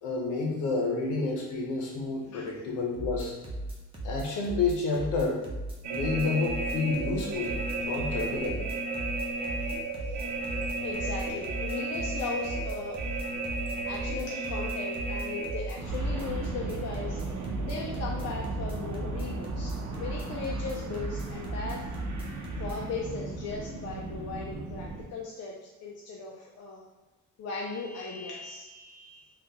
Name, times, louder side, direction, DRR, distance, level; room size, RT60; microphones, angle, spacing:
voice 1, 0.0-3.4 4.0-5.5 5.9-8.6, left 3 dB, 90° left, 0 dB, 0.8 m, -30 dB
sound 1, 2.9-22.8, right 1 dB, 20° right, 0.9 m, -37 dB
sound 2, 5.8-25.0, right 3 dB, 70° right, 0.7 m, -35 dB
voice 2, 10.8-13.0 13.9-17.2 17.6-22.0 22.6-25.5 25.8-26.8 27.4-29.3, left 4 dB, 60° left, -2 dB, 0.5 m, -38 dB
3.6 x 2.4 x 2.8 m, 1.1 s
cardioid pair, 90°, 30 cm